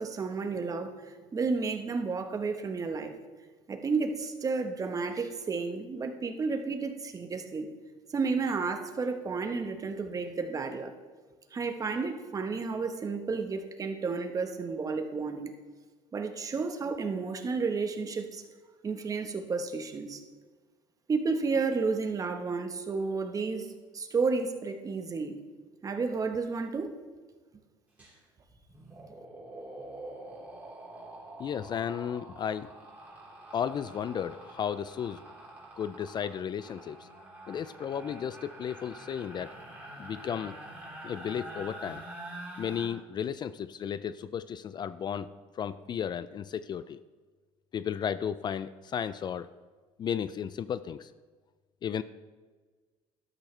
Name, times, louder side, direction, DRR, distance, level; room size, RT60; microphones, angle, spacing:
voice 1, 0.0-3.1 3.7-7.7 8.1-10.9 11.5-15.5 16.1-18.4 18.8-20.2 21.1-23.7 23.9-25.4 25.8-26.9, right 4 dB, 30° right, 6 dB, 1.2 m, -31 dB
sound 1, 28.0-28.2 28.5-42.9, right 1 dB, 15° right, 4.0 m, -46 dB
voice 2, 31.4-32.7 33.5-35.2 35.8-37.1 37.5-39.6 40.0-40.6 41.0-42.0 42.6-45.3 45.5-47.0 47.7-49.5 50.0-51.1 51.8-52.0, left 8 dB, 40° left, 14 dB, 0.4 m, -34 dB
12.5 x 12.0 x 3.3 m, 1.4 s
cardioid pair, 100°, 12 cm